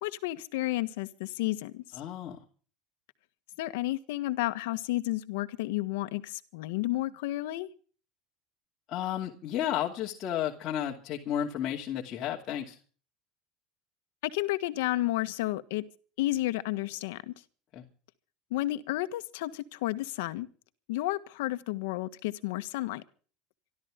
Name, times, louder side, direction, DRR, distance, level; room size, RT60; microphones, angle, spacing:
voice 1, 0.0-1.8 3.6-7.7 14.3-15.8 16.2-17.3 18.5-20.5 20.9-23.0, left 17 dB, 85° left, 1.5 m, -31 dB
voice 2, 1.9-2.4 8.9-12.8 17.7-17.8, left 10 dB, 40° left, 2.6 m, -32 dB
26.5 x 13.0 x 3.7 m
supercardioid pair, 135°, 0 cm